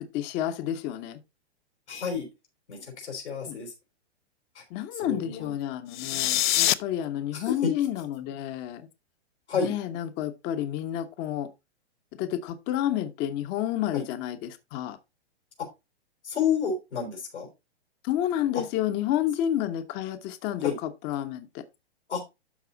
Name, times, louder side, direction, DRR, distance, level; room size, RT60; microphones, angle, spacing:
voice 1, 0.1-1.2 3.5-3.6 4.7-8.8 9.5-11.5 12.2-15.0 18.0-21.5, left 11 dB, 30° left, 1.1 m, -30 dB
voice 2, 1.9-2.3 2.7-3.7 4.5-4.6 4.9-5.5 7.3-7.7 9.5-9.7 13.9-14.0 16.2-17.5 20.6-20.7 22.1-22.2, left 6 dB, 80° left, 4.6 m, -30 dB
sound 1, 5.9-6.7, left 15 dB, 45° left, 0.6 m, -24 dB
12.5 x 4.2 x 3.9 m
hypercardioid pair, 130°, 33 cm